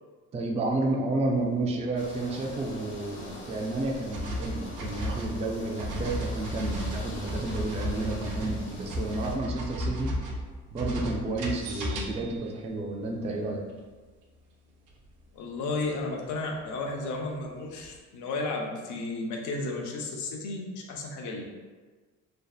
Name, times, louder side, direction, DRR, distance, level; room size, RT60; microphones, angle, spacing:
voice 1, 0.3-10.1 10.7-13.6, right 2 dB, 20° right, 0 dB, 0.3 m, -31 dB
sound 1, 2.0-9.4, left 1 dB, 40° left, 0.7 m, -44 dB
sound 2, 4.1-12.5 16.0-16.1 17.8-18.0, equal, 80° right, 0.5 m, -34 dB
voice 2, 15.3-21.5, left 3 dB, 80° left, 1 dB, 0.5 m, -33 dB
2.7 x 2.1 x 2.3 m, 1.4 s
cardioid pair, 90°, 30 cm